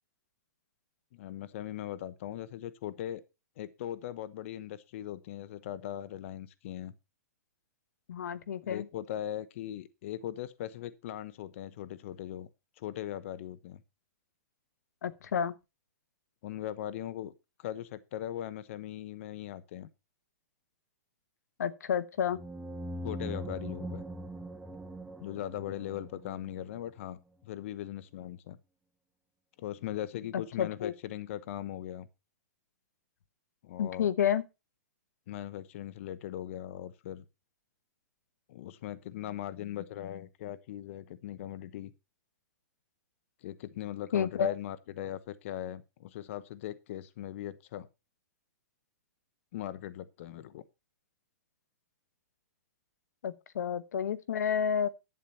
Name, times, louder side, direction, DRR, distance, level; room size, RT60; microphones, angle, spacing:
voice 1, 1.1-3.2 3.6-6.9 8.6-12.5 12.8-13.8 16.4-17.3 17.6-19.9 23.0-24.0 25.2-27.2 27.4-28.6 29.6-32.1 33.6-34.1 35.3-37.2 38.5-41.9 43.4-47.9 49.5-50.6, left 12 dB, 50° left, 0.9 m, -39 dB
voice 2, 8.1-8.9 15.0-15.5 21.6-22.4 30.3-30.9 33.8-34.4 44.1-44.5 53.2-54.9, left 8 dB, 75° left, 1.0 m, -30 dB
sound 1, 22.3-26.9, equal, 5° right, 0.7 m, -41 dB
11.0 x 8.5 x 4.3 m
hypercardioid pair, 150°, 9 cm